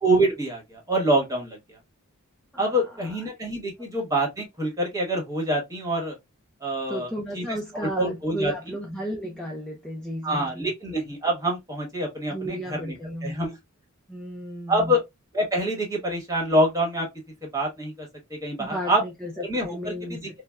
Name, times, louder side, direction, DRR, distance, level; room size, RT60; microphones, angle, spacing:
voice 1, 0.0-1.8 2.6-6.1 6.6-7.6 7.9-8.8 10.2-12.9 13.2-13.5 14.7-15.0 15.3-17.1 17.4-19.0 19.4-20.3, right 1 dB, 15° right, 1.1 m, -26 dB
voice 2, 6.9-10.7 12.3-13.6 14.1-14.9 18.6-20.3, equal, 5° left, 0.4 m, -34 dB
3.3 x 2.1 x 2.2 m
head